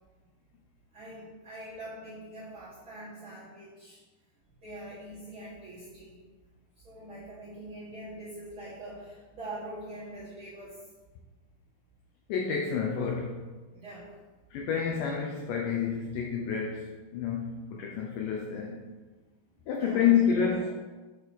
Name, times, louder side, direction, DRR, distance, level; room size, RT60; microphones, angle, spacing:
voice 1, 0.9-4.0 4.5-6.2 6.7-10.9 13.7-14.1 19.5-20.1 20.4-20.7, right 1 dB, 70° right, -10 dB, 1.2 m, -44 dB
voice 2, 12.3-13.5 14.5-18.8 19.7-20.7, left 7 dB, 90° left, 1 dB, 1.8 m, -29 dB
6.4 x 4.0 x 3.9 m, 1.3 s
omnidirectional pair, 4.4 m